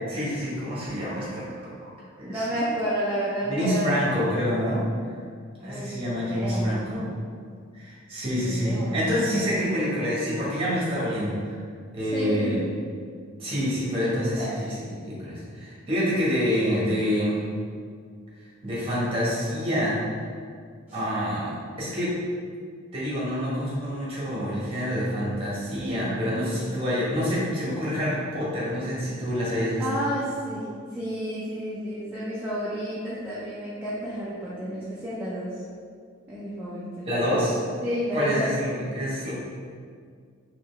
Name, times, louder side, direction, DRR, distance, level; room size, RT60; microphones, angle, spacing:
voice 1, 0.1-1.9 2.2-2.5 3.5-4.8 5.6-7.1 7.7-11.5 11.9-12.6 13.4-17.4 18.6-20.0 20.9-22.2 22.9-29.8 37.1-37.7 38.1-39.3, equal, 25° right, -7 dB, 1.3 m, -27 dB
voice 2, 2.2-3.9 5.6-6.8 8.4-9.6 12.0-12.6 13.9-14.1 14.4-14.6 20.9-21.0 29.5-35.6 36.3-37.1 37.8-38.5, equal, 10° right, -10 dB, 0.5 m, -31 dB
3.8 x 3.1 x 3.4 m, 2.1 s
head